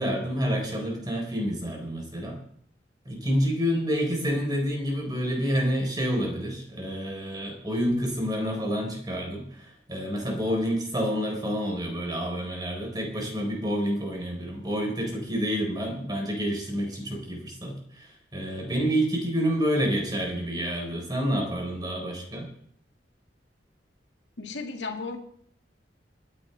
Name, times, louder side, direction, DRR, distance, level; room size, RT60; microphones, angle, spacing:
voice 1, 0.0-2.4 3.1-22.5, equal, 25° right, 3.9 m, -28 dB
voice 2, 24.4-25.2, left 4 dB, 80° left, 1.9 m, -34 dB
27.0 x 9.9 x 3.3 m
head